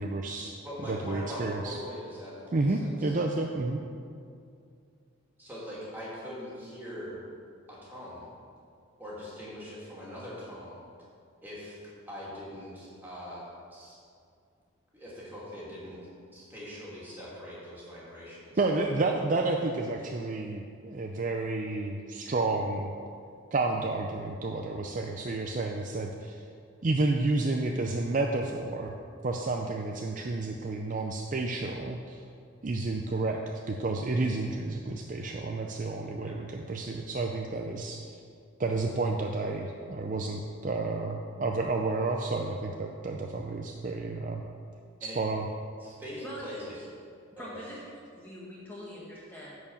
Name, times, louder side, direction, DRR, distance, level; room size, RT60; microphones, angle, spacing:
voice 1, 0.0-0.6 0.8-1.8 2.5-3.8 18.6-22.9 23.5-26.4 26.8-28.9 29.2-32.2 32.6-38.0 38.6-44.4 45.0-45.4, right 3 dB, 35° right, 2 dB, 0.4 m, -30 dB
voice 2, 0.6-3.1 5.4-7.2 7.7-8.3 9.0-10.8 11.4-11.8 12.1-14.0 14.9-16.1 16.3-18.6 36.2-36.3 45.0-45.2 45.8-46.9 47.4-47.7, equal, 10° right, -8 dB, 2.6 m, -42 dB
voice 3, 46.2-46.6 47.3-49.6, equal, 10° left, -6 dB, 1.1 m, -44 dB
10.5 x 4.8 x 7.1 m, 2.4 s
head